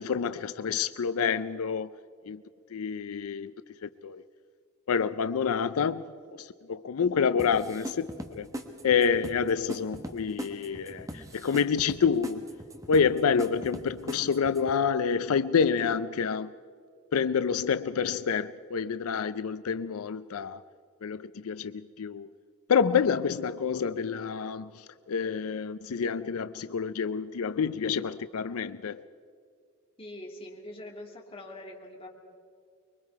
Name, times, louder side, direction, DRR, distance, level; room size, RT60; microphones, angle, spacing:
voice 1, 0.0-2.0 2.3-2.4 2.7-3.5 3.8-4.2 4.9-8.5 8.8-12.6 12.9-16.5 17.1-20.6 21.0-22.3 22.7-29.0, left 6 dB, 80° left, 0.5 m, -28 dB
sound 1, 7.4-14.8, equal, 15° right, 1.3 m, -40 dB
voice 2, 30.0-32.1, left 1 dB, 25° left, 2.6 m, -43 dB
25.0 x 22.5 x 4.7 m
head